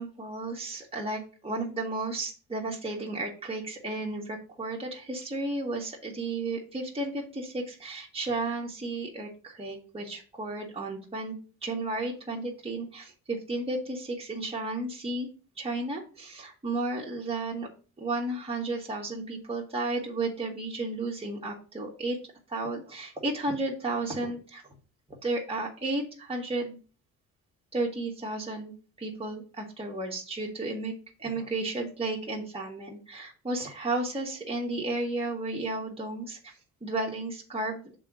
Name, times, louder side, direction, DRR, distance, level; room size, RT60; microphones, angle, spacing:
voice 1, 0.0-11.3 11.6-15.3 15.6-17.7 18.0-22.2 22.5-24.8 25.2-26.8 27.7-28.7 29.0-30.9 31.2-38.0, right 2 dB, 20° right, -2 dB, 1.9 m, -33 dB
6.7 x 3.8 x 6.3 m, 0.37 s
cardioid pair, 90°, 30 cm